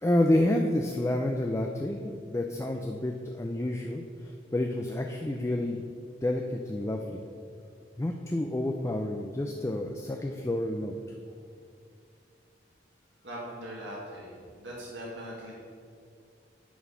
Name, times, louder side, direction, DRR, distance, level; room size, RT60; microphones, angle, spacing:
voice 1, 0.0-5.8 6.2-7.2 8.0-11.0, left 1 dB, 15° left, 2 dB, 0.3 m, -29 dB
voice 2, 13.2-15.5, equal, 75° right, -5 dB, 1.7 m, -41 dB
9.4 x 4.3 x 5.6 m, 2.3 s
head